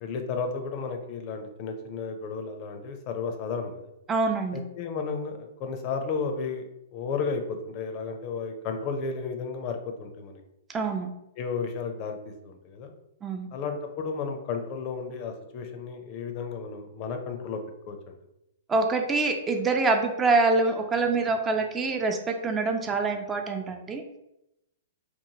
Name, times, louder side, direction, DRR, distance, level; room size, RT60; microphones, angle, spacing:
voice 1, 0.0-3.9 4.5-10.4 11.4-12.9 13.5-17.6 17.9-18.2, left 5 dB, 40° left, 5 dB, 0.4 m, -33 dB
voice 2, 4.1-4.6 10.7-11.1 13.2-13.5 18.7-24.0, right 3 dB, 20° right, 4 dB, 0.3 m, -25 dB
3.0 x 2.1 x 2.8 m, 0.86 s
hypercardioid pair, 120°, 0 cm